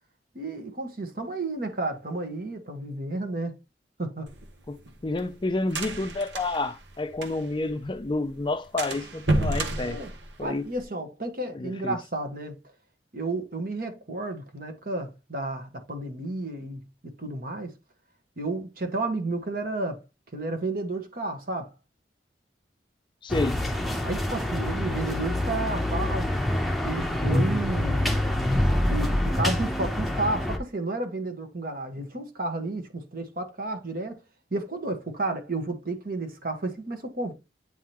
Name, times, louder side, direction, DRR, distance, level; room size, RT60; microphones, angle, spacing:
voice 1, 0.3-3.6 4.0-4.3 9.8-10.1 10.4-12.6 13.1-17.7 18.4-20.0 20.3-21.7 24.0-26.3 26.8-28.2 28.9-34.2 34.5-37.3, right 2 dB, 55° right, 1.5 m, -32 dB
sound 1, 4.3-7.7 8.0-8.1 8.3-8.5 8.8-10.8, right 2 dB, 80° right, 1.2 m, -30 dB
voice 2, 5.0-10.0 10.4-10.7 11.5-12.0 23.2-23.6, left 2 dB, 25° left, 0.4 m, -29 dB
sound 2, 23.3-30.6, left 1 dB, ahead, 0.8 m, -26 dB
9.2 x 3.7 x 3.0 m
head